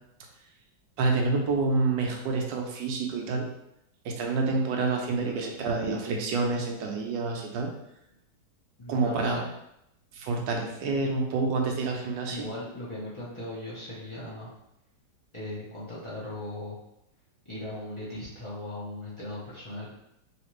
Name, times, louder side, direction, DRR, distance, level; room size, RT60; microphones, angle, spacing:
voice 1, 1.0-3.5 4.0-7.7 8.9-9.4 10.1-12.5, right 3 dB, 90° right, 1 dB, 1.3 m, -28 dB
voice 2, 8.8-9.5 12.3-14.5 15.3-16.8 17.4-19.9, left 1 dB, 35° left, -8 dB, 0.5 m, -38 dB
3.2 x 2.8 x 3.1 m, 0.82 s
omnidirectional pair, 1.9 m